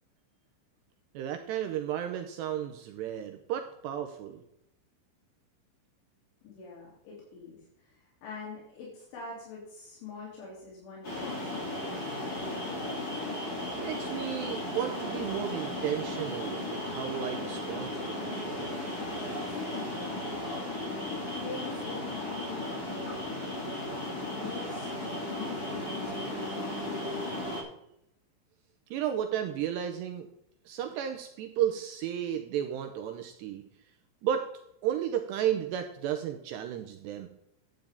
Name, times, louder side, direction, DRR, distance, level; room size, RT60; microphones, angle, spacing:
voice 1, 1.1-4.4 13.7-18.7 28.9-30.3 30.7-33.6 34.2-34.5 34.8-37.3, right 10 dB, 80° right, 5 dB, 2.6 m, -33 dB
voice 2, 6.4-12.1 19.5-20.0 20.8-23.8 24.3-24.9 25.2-26.7, left 4 dB, 75° left, -5 dB, 5.2 m, -45 dB
sound 1, 11.0-27.6, left 1 dB, 30° left, 2.0 m, -35 dB
12.0 x 9.1 x 3.5 m, 0.78 s
omnidirectional pair, 5.5 m